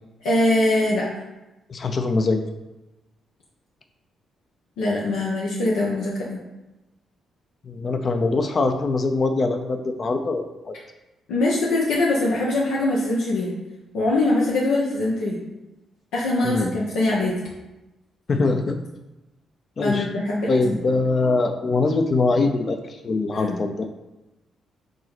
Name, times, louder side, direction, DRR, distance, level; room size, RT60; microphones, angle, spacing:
voice 1, 0.2-1.1 4.8-6.4 11.3-13.5 13.9-15.4 16.1-17.3 19.8-20.8 23.3-23.6, left 2 dB, 90° left, -5 dB, 1.2 m, -22 dB
voice 2, 1.7-2.4 7.6-10.7 16.4-16.7 18.3-18.8 19.8-20.1 20.5-23.9, left 3 dB, 45° left, 6 dB, 0.7 m, -23 dB
5.3 x 4.0 x 6.0 m, 1.0 s
cardioid pair, 70°, 0 cm